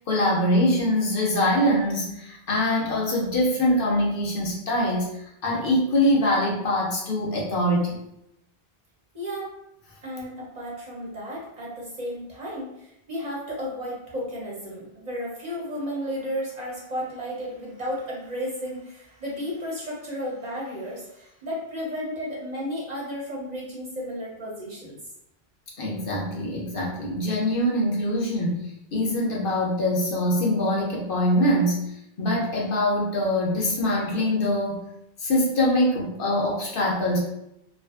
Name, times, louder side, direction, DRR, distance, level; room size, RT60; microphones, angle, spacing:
voice 1, 0.0-5.1 5.4-8.0 25.8-34.9 35.2-37.2, left 1 dB, 65° left, -3 dB, 0.8 m, -23 dB
voice 2, 9.1-9.5 10.0-25.0, equal, 45° right, -4 dB, 0.7 m, -33 dB
2.5 x 2.4 x 2.3 m, 0.81 s
omnidirectional pair, 1.1 m